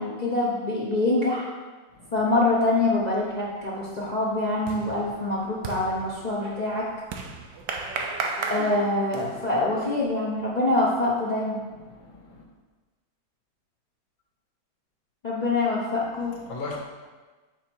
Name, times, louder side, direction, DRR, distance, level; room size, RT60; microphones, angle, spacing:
voice 1, 0.0-1.5 2.1-6.9 8.5-11.6 15.2-16.3, left 2 dB, 55° left, -6 dB, 0.4 m, -25 dB
sound 1, 3.0-3.4 3.7-9.5, right 4 dB, 70° right, 1.3 m, -35 dB
voice 2, 11.9-12.4 16.5-16.8, left 3 dB, 90° left, -2 dB, 1.9 m, -38 dB
6.0 x 4.1 x 4.5 m, 1.3 s
omnidirectional pair, 2.1 m